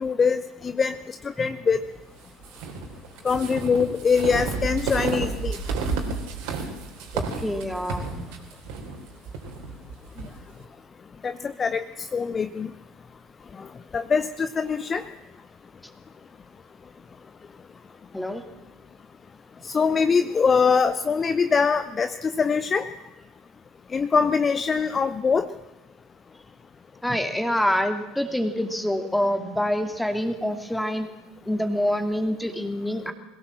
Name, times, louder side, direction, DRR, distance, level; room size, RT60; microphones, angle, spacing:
voice 1, 0.0-1.8 3.2-5.6 11.2-11.8 12.1-12.7 13.9-15.0 19.6-22.9 23.9-25.4, left 5 dB, 25° left, 12 dB, 0.7 m, -23 dB
sound 1, 2.4-10.3, right 4 dB, 60° right, 3.7 m, -31 dB
voice 2, 7.1-8.3 18.1-18.4 27.0-31.1 31.5-33.1, equal, 5° left, 7 dB, 2.5 m, -26 dB
22.0 x 17.0 x 7.6 m, 1.1 s
figure-of-eight pair, 70°, 0 cm